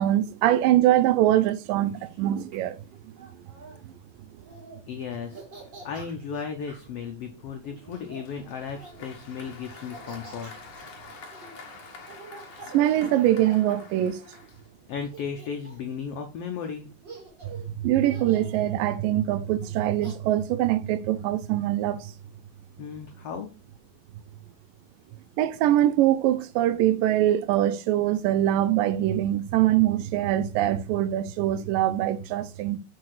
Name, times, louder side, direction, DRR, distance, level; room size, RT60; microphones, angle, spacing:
voice 1, 0.0-2.8 12.7-14.2 17.8-22.1 25.4-32.8, right 13 dB, 85° right, 2.3 m, -23 dB
Laughter, 1.4-3.8 4.3-4.8 5.1-6.9 7.6-9.1 9.7-14.6 15.0-16.0 16.6-16.7 17.0-17.7 18.1-18.6 19.6-20.1, right 3 dB, 35° right, 3.4 m, -47 dB
voice 2, 4.9-10.5 14.9-16.9 22.8-23.5, left 6 dB, 90° left, 1.3 m, -35 dB
Applause, 7.9-15.0, left 4 dB, 65° left, 1.1 m, -47 dB
6.6 x 4.8 x 4.7 m
omnidirectional pair, 3.9 m